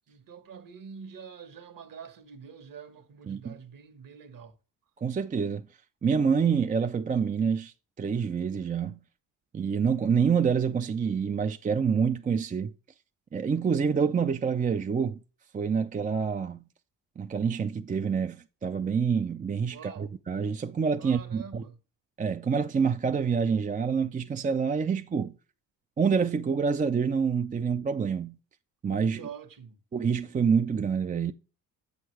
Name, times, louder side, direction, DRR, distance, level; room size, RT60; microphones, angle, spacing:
voice 1, 0.1-4.6 19.7-20.1 21.0-21.8 29.1-29.8, right 6 dB, 50° right, 1.4 m, -46 dB
voice 2, 3.3-3.6 5.0-5.7 6.0-9.0 9.5-12.7 13.3-15.2 15.5-16.6 17.2-21.6 22.2-25.4 26.0-28.4 28.8-29.2 29.9-31.3, right 6 dB, 20° right, 0.4 m, -27 dB
7.6 x 6.5 x 3.2 m
supercardioid pair, 65°, 42 cm